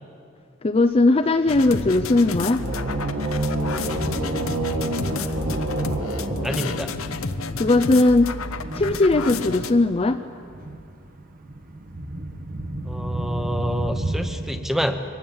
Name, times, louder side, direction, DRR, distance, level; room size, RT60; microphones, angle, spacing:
voice 1, 0.6-2.6 7.6-8.3 8.7-10.2, left 2 dB, 25° left, 6 dB, 0.5 m, -18 dB
Thunder, 0.9-14.6, right 1 dB, 40° right, 1.4 m, -34 dB
sound 1, 1.5-9.7, left 3 dB, 70° left, 0.9 m, -31 dB
sound 2, 2.4-7.2, right 1 dB, 65° right, 2.6 m, -28 dB
voice 2, 5.0-5.8 6.4-6.9 12.9-15.0, equal, ahead, 7 dB, 1.0 m, -28 dB
23.5 x 18.0 x 7.3 m, 2.5 s
head